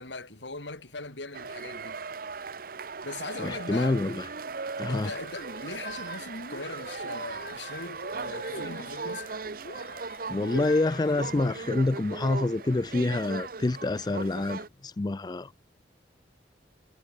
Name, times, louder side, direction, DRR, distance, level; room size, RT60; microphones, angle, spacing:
voice 1, 0.0-2.0 3.0-4.0 4.9-9.3, left 3 dB, 85° left, 4.9 m, -40 dB
sound 1, 1.3-14.7, right 4 dB, 55° right, 0.9 m, -38 dB
voice 2, 3.4-4.3 4.8-5.1 10.3-15.5, left 2 dB, 25° left, 0.4 m, -27 dB
sound 2, 5.0-11.8, left 2 dB, 60° left, 3.9 m, -45 dB
head